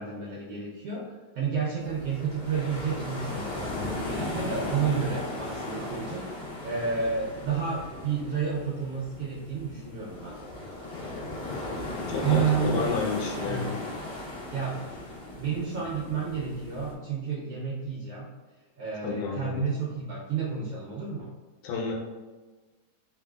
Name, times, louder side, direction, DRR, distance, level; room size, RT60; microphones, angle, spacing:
voice 1, 0.0-10.4 12.2-12.8 13.4-13.7 14.5-14.9 15.4-18.3 18.8-21.3, right 6 dB, 90° right, -5 dB, 1.3 m, -31 dB
sound 1, 1.8-16.9, left 2 dB, 40° left, 1.4 m, -36 dB
voice 2, 12.1-13.8 19.0-19.6 21.6-21.9, left 5 dB, 85° left, -1 dB, 2.1 m, -31 dB
4.7 x 3.9 x 2.4 m, 1.3 s
omnidirectional pair, 3.6 m